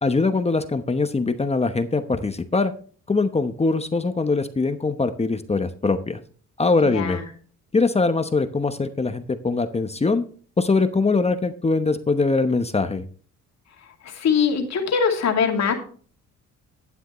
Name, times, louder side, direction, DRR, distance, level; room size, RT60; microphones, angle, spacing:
voice 1, 0.0-2.7 3.1-6.2 6.6-7.2 7.7-10.2 10.6-13.0, left 3 dB, 20° left, 9 dB, 0.9 m, -22 dB
voice 2, 6.8-7.2 14.0-15.7, left 6 dB, 60° left, 3 dB, 2.5 m, -22 dB
12.0 x 9.3 x 3.1 m, 0.43 s
cardioid pair, 90°, 30 cm